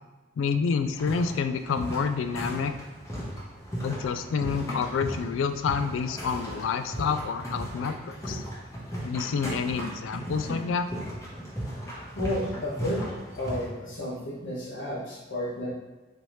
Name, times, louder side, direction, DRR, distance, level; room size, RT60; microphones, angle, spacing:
voice 1, 0.4-2.7 3.8-8.4 9.0-10.9, left 5 dB, 80° left, 9 dB, 0.3 m, -28 dB
sound 1, 0.9-13.7, equal, 15° left, 1.0 m, -36 dB
voice 2, 12.1-13.1 13.4-15.7, left 1 dB, 65° left, -6 dB, 1.1 m, -32 dB
4.1 x 3.2 x 3.1 m, 1.2 s
head